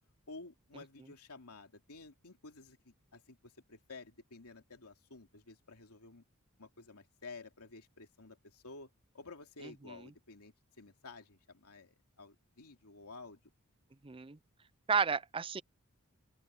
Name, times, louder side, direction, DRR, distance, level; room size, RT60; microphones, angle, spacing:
voice 1, 0.3-6.2 6.6-8.9 9.1-13.4, left 3 dB, 90° left, 2.8 m, -52 dB
voice 2, 9.6-10.1 14.0-14.4 14.9-15.6, right 5 dB, 25° right, 0.5 m, -33 dB
open air
head